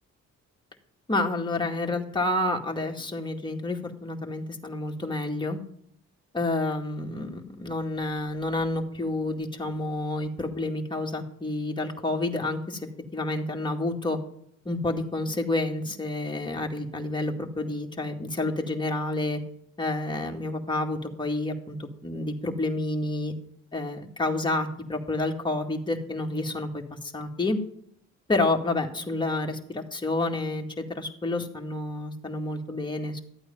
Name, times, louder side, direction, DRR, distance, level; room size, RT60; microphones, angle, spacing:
voice 1, 1.1-5.6 6.3-14.2 14.7-19.4 19.8-23.3 23.7-27.6 28.3-33.2, left 2 dB, 15° left, 1 dB, 2.0 m, -29 dB
13.5 x 8.8 x 5.4 m, 0.68 s
cardioid pair, 90°, 30 cm